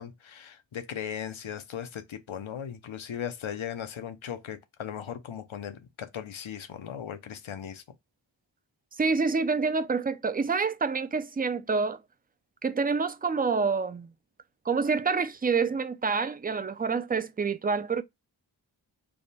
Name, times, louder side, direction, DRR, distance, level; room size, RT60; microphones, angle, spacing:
voice 1, 0.0-7.8, left 9 dB, 85° left, 0.7 m, -38 dB
voice 2, 9.0-12.0 12.6-14.1 14.7-18.0, right 4 dB, 20° right, 0.3 m, -27 dB
3.5 x 2.2 x 4.0 m
wide cardioid pair, 60°, 46 cm